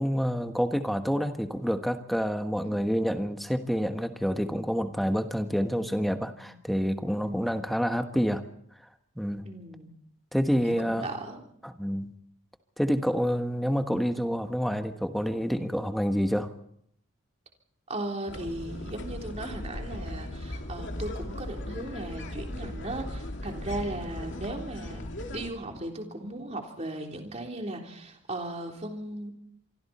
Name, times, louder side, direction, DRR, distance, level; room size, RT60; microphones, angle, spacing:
voice 1, 0.0-8.5 9.2-9.4 10.3-11.1 11.6-12.1 12.8-16.5, equal, ahead, 7 dB, 1.3 m, -28 dB
voice 2, 5.3-6.6 7.2-7.6 9.4-9.9 10.6-11.4 17.9-25.1 25.3-29.3, right 1 dB, 35° right, 2 dB, 3.6 m, -37 dB
sound 1, 18.3-25.5, left 1 dB, 60° left, 2.6 m, -37 dB
26.5 x 24.5 x 4.3 m, 0.68 s
head